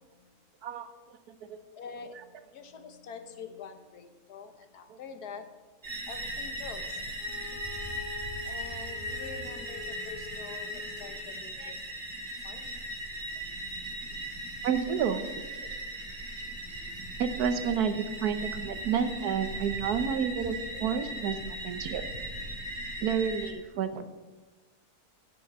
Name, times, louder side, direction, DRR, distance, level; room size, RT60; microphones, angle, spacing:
voice 1, 0.6-1.2 1.5-1.6 4.9-5.0 11.6-11.8 14.6-15.3 17.2-22.0 23.0-24.1, right 7 dB, 80° right, 10 dB, 1.3 m, -30 dB
voice 2, 1.8-5.5 6.1-7.2 8.4-11.9 12.3-12.7 20.7-20.9, left 5 dB, 90° left, 7 dB, 1.5 m, -46 dB
sound 1, 5.8-23.5, right 1 dB, 30° right, 2.1 m, -38 dB
Bowed string instrument, 7.2-11.4, left 8 dB, 60° left, 1.1 m, -47 dB
10.0 x 6.8 x 7.3 m, 1.3 s
omnidirectional pair, 1.6 m